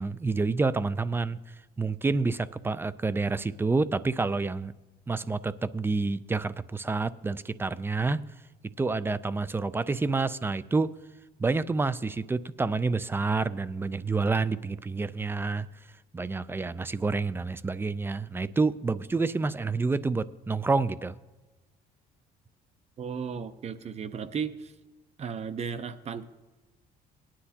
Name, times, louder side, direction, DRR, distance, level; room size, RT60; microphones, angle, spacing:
voice 1, 0.0-1.4 1.8-4.7 5.1-8.2 8.8-10.9 11.4-15.7 16.1-21.2, right 3 dB, 15° right, 17 dB, 0.3 m, -28 dB
voice 2, 23.0-24.7 25.2-26.2, right 6 dB, 40° right, 12 dB, 0.7 m, -35 dB
18.5 x 10.0 x 2.8 m, 1.2 s
cardioid pair, 110°, 17 cm